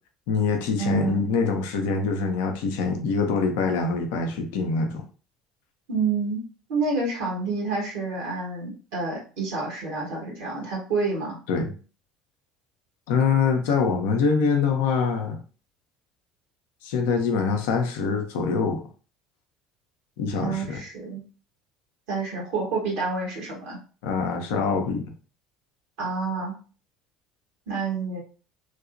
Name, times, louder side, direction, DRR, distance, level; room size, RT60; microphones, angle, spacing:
voice 1, 0.3-5.0 11.5-11.7 13.1-15.4 16.8-18.8 20.2-20.8 24.0-25.1, left 5 dB, 65° left, 4 dB, 0.5 m, -24 dB
voice 2, 0.8-1.2 5.9-6.4 6.7-11.4 20.4-21.2 22.1-23.8 26.0-26.6 27.7-28.2, right 4 dB, 60° right, -2 dB, 1.2 m, -28 dB
3.2 x 2.7 x 2.5 m, 0.37 s
figure-of-eight pair, 65°, 0 cm